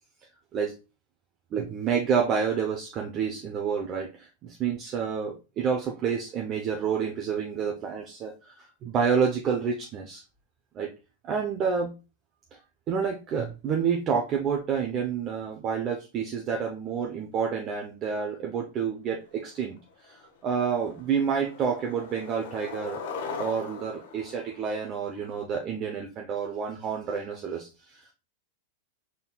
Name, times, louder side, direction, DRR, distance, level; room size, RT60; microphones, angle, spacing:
voice 1, 1.5-10.2 10.7-10.9 11.2-11.9 12.9-19.8 20.0-23.0 23.4-28.1, right 6 dB, 35° right, 1 dB, 0.7 m, -29 dB
Skateboard, 19.6-19.7 20.0-20.4 20.7-25.3, left 5 dB, 65° left, 0.9 m, -40 dB
4.2 x 3.7 x 2.3 m, 0.30 s
hypercardioid pair, 115°, 0 cm